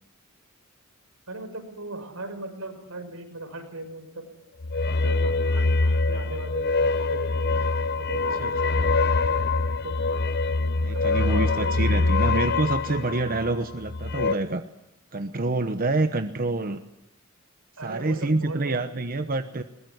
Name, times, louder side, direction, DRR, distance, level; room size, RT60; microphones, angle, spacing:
voice 1, 1.3-4.3 4.9-7.6 8.0-10.0 10.9-12.2 17.8-18.8, right 2 dB, 85° right, 5 dB, 6.1 m, -38 dB
sound 1, 4.6-14.3, left 3 dB, 50° left, 0.8 m, -24 dB
voice 2, 10.8-14.6 15.1-16.8 17.8-19.6, right 2 dB, 45° right, 9 dB, 1.0 m, -27 dB
21.5 x 20.5 x 9.6 m, 0.92 s
head